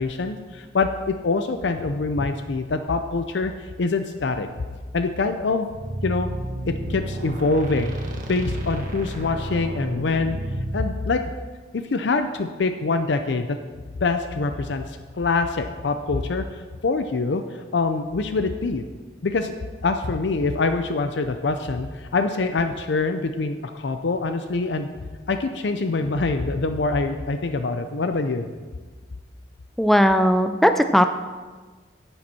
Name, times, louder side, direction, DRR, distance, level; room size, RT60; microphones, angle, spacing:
voice 1, 0.0-4.5 4.9-5.7 6.0-6.3 6.7-8.0 8.3-10.4 10.7-11.2 11.7-13.6 14.0-18.8 19.2-19.5 19.8-24.9 25.3-28.5, left 3 dB, 70° left, 8 dB, 0.5 m, -25 dB
sound 1, 5.7-10.8, right 1 dB, 45° right, 1.4 m, -31 dB
voice 2, 29.8-31.1, equal, ahead, 8 dB, 0.3 m, -17 dB
10.5 x 8.8 x 4.3 m, 1.4 s
head